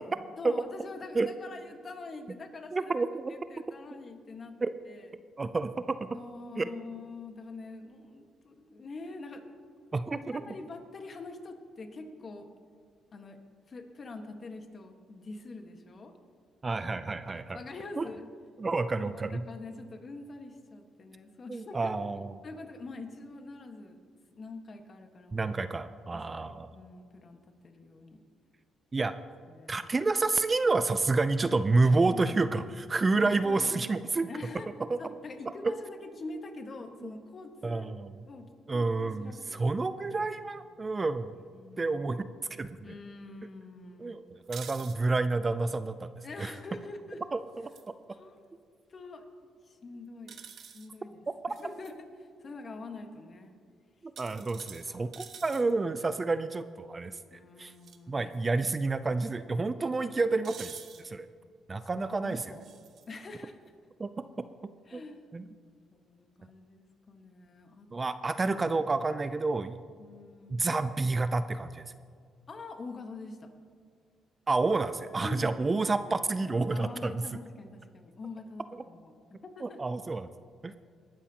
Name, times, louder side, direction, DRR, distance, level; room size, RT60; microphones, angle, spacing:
voice 1, 0.4-2.9 3.3-4.5 4.9-5.1 6.1-9.5 10.3-12.6 13.1-13.4 13.7-16.1 17.5-18.3 18.9-21.9 22.4-24.0 24.3-25.5 26.1-27.4 27.6-28.2 29.5-29.9 31.8-32.4 33.1-33.8 34.3-34.7 35.0-37.9 38.2-39.8 40.2-40.6 41.5-42.2 42.8-44.1 46.2-47.2 48.1-48.5 48.9-49.3 49.7-50.4 50.7-53.5 54.9-55.1 57.3-58.3 61.9-62.6 63.1-63.6 64.9-65.3 65.9-67.9 70.0-70.8 72.5-73.5 75.2-75.6 76.7-79.8, left 3 dB, 40° left, 5 dB, 1.5 m, -45 dB
voice 2, 2.7-3.4 4.6-4.7 5.4-6.1 6.6-6.7 9.9-10.4 16.6-17.6 18.0-18.1 18.6-19.4 21.5-22.3 25.3-26.7 28.9-29.1 29.7-34.3 34.9-35.0 35.6-35.7 37.6-38.2 38.7-41.4 41.8-42.2 42.6-42.9 44.0-46.1 46.4-46.5 47.3-47.7 54.2-57.7 58.1-60.8 61.0-61.3 61.7-62.4 64.0-64.1 64.9-65.0 65.3-65.5 67.9-69.8 70.5-71.8 74.5-77.2 79.6-80.3 80.6-80.7, right 3 dB, 30° right, 12 dB, 0.5 m, -29 dB
sound 1, 44.4-45.0 47.5-47.9 50.3-50.9 51.5-51.9 54.2-55.7 57.7-58.0 58.3-58.4 60.4-61.0 62.4-63.1, right 7 dB, 65° right, 1.0 m, -48 dB
21.0 x 12.5 x 2.9 m, 2.1 s
cardioid pair, 90°, 0 cm